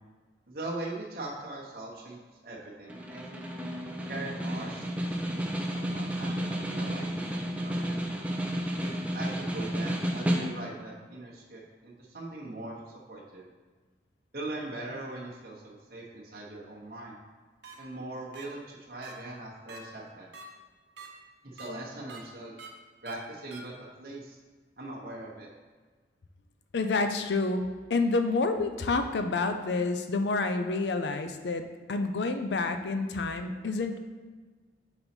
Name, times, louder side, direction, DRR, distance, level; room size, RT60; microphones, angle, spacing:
voice 1, 0.5-3.4 4.1-8.1 8.8-13.5 14.3-17.2 17.8-20.3 21.4-22.6 23.0-24.4 24.8-25.5, right 2 dB, 55° right, -5 dB, 0.9 m, -41 dB
Snare drum, 2.9-10.8, equal, 10° right, 0.4 m, -32 dB
sound 1, 17.6-17.7 18.3-18.4 19.0-19.1 19.7-19.8 20.3-20.4 21.0-21.1 21.6-21.7 22.1-22.2 22.6-22.7 23.1-23.2 23.5-23.6, right 5 dB, 80° right, 0.9 m, -45 dB
voice 2, 26.7-27.6 27.9-31.6 31.9-34.0, left 3 dB, 75° left, 7 dB, 0.5 m, -28 dB
5.3 x 4.0 x 4.4 m, 1.4 s
head